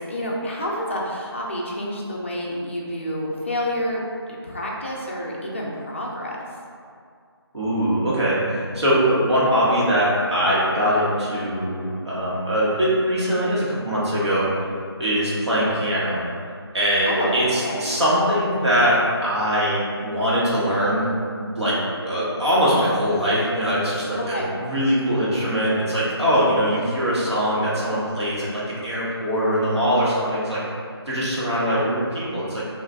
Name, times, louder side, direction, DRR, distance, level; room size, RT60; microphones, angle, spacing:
voice 1, 0.0-6.4 17.0-18.0 24.1-24.6 31.6-31.9, left 1 dB, 30° left, -3 dB, 0.4 m, -28 dB
voice 2, 7.5-14.5 15.0-16.2 16.7-21.1 21.4-21.8 22.0-30.6 31.1-32.6, equal, 85° right, -8 dB, 1.2 m, -22 dB
2.6 x 2.4 x 3.4 m, 2.3 s
figure-of-eight pair, 160°, 14 cm